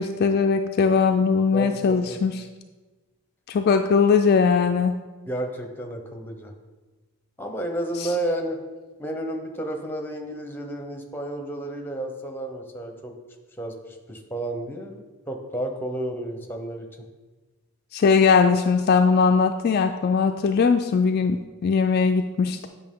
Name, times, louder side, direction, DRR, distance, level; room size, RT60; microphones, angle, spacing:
voice 1, 0.0-2.4 3.5-4.9 8.0-8.1 17.9-22.7, left 5 dB, 45° left, 5 dB, 0.3 m, -20 dB
voice 2, 1.5-2.2 5.3-6.5 7.4-8.6 9.0-13.1 13.6-13.7 14.1-16.9, right 1 dB, 10° left, 4 dB, 0.7 m, -31 dB
8.8 x 5.6 x 3.7 m, 1.3 s
head